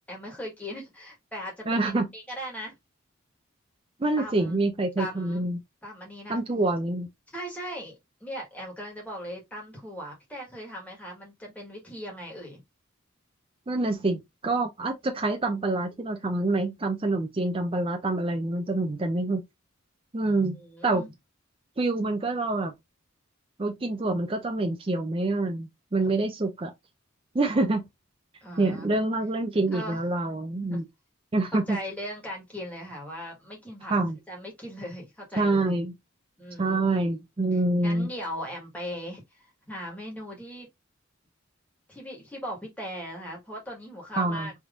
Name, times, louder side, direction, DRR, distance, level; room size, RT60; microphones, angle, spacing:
voice 1, 0.1-2.7 4.2-4.6 5.0-5.4 5.8-6.4 7.3-12.6 20.3-21.1 28.4-28.9 29.7-30.0 30.6-30.8 31.5-33.9 34.3-35.7 36.4-37.2 37.8-40.7 41.9-44.5, equal, 5° left, 1.4 m, -39 dB
voice 2, 1.7-2.1 4.0-5.6 6.3-7.1 13.7-19.4 20.1-20.6 20.8-21.1 21.8-22.7 23.6-26.7 27.3-27.8 28.6-30.9 31.3-31.8 33.9-34.2 35.4-35.9 36.6-38.1 44.2-44.5, right 2 dB, 25° right, 0.5 m, -26 dB
3.4 x 3.0 x 2.4 m
head